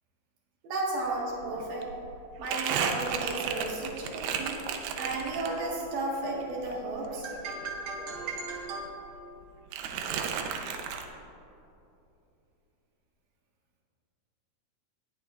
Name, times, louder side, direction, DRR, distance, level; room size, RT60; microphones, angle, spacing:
voice 1, 0.6-1.9 2.4-4.6 5.0-8.9, right 2 dB, 65° right, -3 dB, 2.6 m, -34 dB
Crumpling crinkling, 1.1-1.2 1.4-5.9 6.2-8.4 8.6-9.4 9.7-11.1, right 7 dB, 85° right, 2.6 m, -34 dB
19.0 x 6.3 x 2.3 m, 2.8 s
omnidirectional pair, 4.3 m